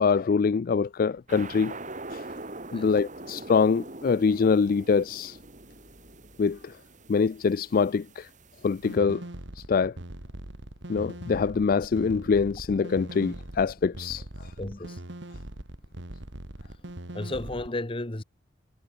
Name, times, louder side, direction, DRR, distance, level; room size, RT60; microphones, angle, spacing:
voice 1, 0.0-1.8 2.1-2.3 2.7-5.4 6.4-6.8 7.1-8.3 8.6-9.2 9.6-10.0 10.9-14.5, left 5 dB, 50° left, 0.4 m, -24 dB
sound 1, 1.3-9.0, right 2 dB, 40° right, 4.5 m, -43 dB
sound 2, 8.8-17.7, right 1 dB, 70° right, 2.3 m, -41 dB
voice 2, 14.6-15.0 17.1-18.2, left 2 dB, 30° left, 1.2 m, -33 dB
head